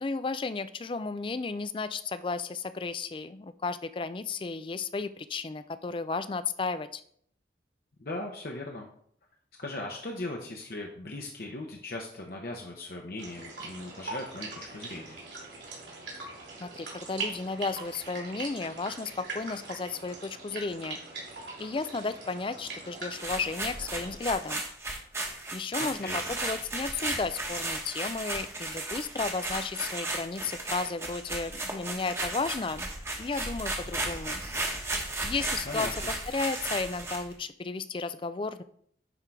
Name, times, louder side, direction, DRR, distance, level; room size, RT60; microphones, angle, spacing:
voice 1, 0.0-7.0 16.6-21.0 21.6-24.6 25.5-32.9 33.2-34.4 35.2-35.9 36.3-38.6, left 4 dB, 30° left, 13 dB, 0.4 m, -33 dB
voice 2, 8.0-8.9 9.6-15.2 25.8-26.2 35.7-35.9, left 2 dB, 55° left, 0 dB, 0.9 m, -38 dB
sound 1, 13.2-24.2, right 3 dB, 80° right, 3.0 m, -42 dB
sound 2, 23.1-37.3, right 2 dB, 15° right, 1.1 m, -35 dB
10.0 x 3.8 x 4.6 m, 0.64 s
head